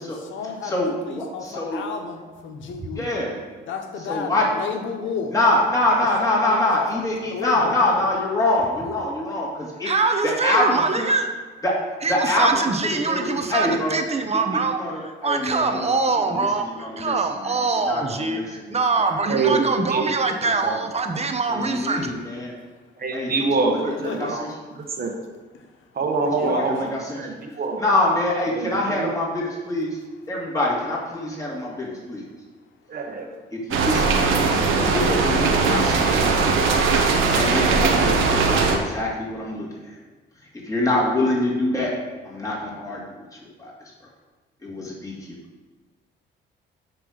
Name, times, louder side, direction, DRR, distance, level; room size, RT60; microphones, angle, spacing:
voice 1, 0.0-3.1 3.7-5.4 6.2-6.9 7.3-7.8 23.9-24.4 25.5-25.7 26.2-26.7, left 5 dB, 75° left, 5 dB, 1.0 m, -32 dB
voice 2, 0.6-1.8 3.0-3.3 4.1-4.4 5.3-9.9 10.2-10.6 11.6-11.7 12.1-12.6 13.0-14.0 14.8-15.9 16.2-16.5 16.8-17.1 17.8-18.8 19.0-19.2 20.6-20.7 21.6-22.5 23.1-23.3 23.7-24.5 26.4-27.4 27.8-30.0 30.3-32.2 33.7-36.3 37.3-39.7 40.7-41.9 42.2-43.2 43.6-43.7 44.6-45.4, left 1 dB, 15° left, -5 dB, 2.5 m, -25 dB
voice 3, 1.2-1.8 2.3-2.4 2.9-3.2 4.1-4.2 4.5-4.6 5.0-5.6 7.2-7.3 7.8-7.9 8.8-9.0 9.8-11.3 12.0-22.1, right 4 dB, 30° right, 5 dB, 0.9 m, -24 dB
voice 4, 19.3-20.1 23.0-25.2 25.9-27.8 28.5-29.1 32.9-33.3, right 4 dB, 50° right, 2 dB, 1.3 m, -25 dB
sound 1, 33.7-38.8, right 4 dB, 85° right, 1.1 m, -19 dB
9.8 x 3.4 x 6.3 m, 1.3 s
cardioid pair, 90°, 20 cm